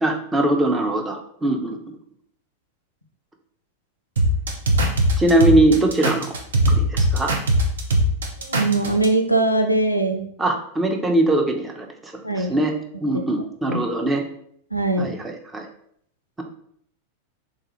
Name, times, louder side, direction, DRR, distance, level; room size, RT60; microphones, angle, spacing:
voice 1, 0.0-1.8 5.2-6.3 6.7-7.3 10.4-12.7 13.0-14.2 15.0-15.6, right 1 dB, 10° right, 2 dB, 0.5 m, -21 dB
sound 1, 4.2-9.1, right 1 dB, 65° right, 0.5 m, -20 dB
voice 2, 8.5-10.3 12.2-12.5 13.7-13.8 14.7-15.1, right 2 dB, 90° left, 6 dB, 0.3 m, -21 dB
3.2 x 2.3 x 3.0 m, 0.66 s
figure-of-eight pair, 90°, 0 cm